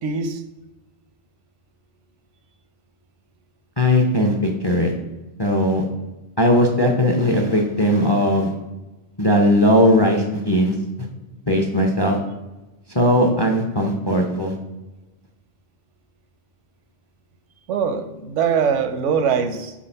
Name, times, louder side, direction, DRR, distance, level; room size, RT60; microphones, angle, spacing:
voice 1, 0.0-0.4 17.7-19.7, right 6 dB, 85° right, 9 dB, 1.0 m, -22 dB
voice 2, 3.8-4.9 5.4-5.8 6.4-8.5 9.2-10.8 11.5-12.2 12.9-14.6, left 1 dB, 30° left, 2 dB, 0.5 m, -18 dB
7.0 x 2.5 x 5.5 m, 1.0 s
omnidirectional pair, 1.2 m